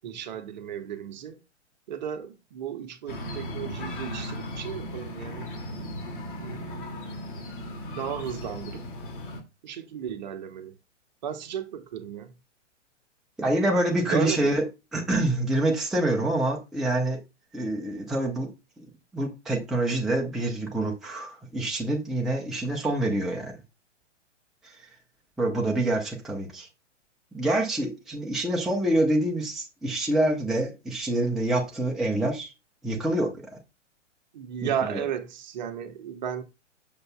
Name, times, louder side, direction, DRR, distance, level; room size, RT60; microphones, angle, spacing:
voice 1, 0.0-1.4 1.9-5.5 6.4-7.0 7.9-8.8 9.6-10.7 11.2-12.3 14.0-14.6 34.3-36.4, right 8 dB, 35° right, 1.0 m, -34 dB
sound 1, 3.1-9.4, left 1 dB, 45° left, 2.3 m, -36 dB
voice 2, 13.4-14.6 14.9-17.2 17.5-18.5 18.8-23.5 24.6-24.9 25.4-26.7 27.3-32.5 32.8-33.5 34.6-35.0, right 1 dB, ahead, 0.7 m, -26 dB
7.8 x 6.9 x 2.2 m
figure-of-eight pair, 120°, 37 cm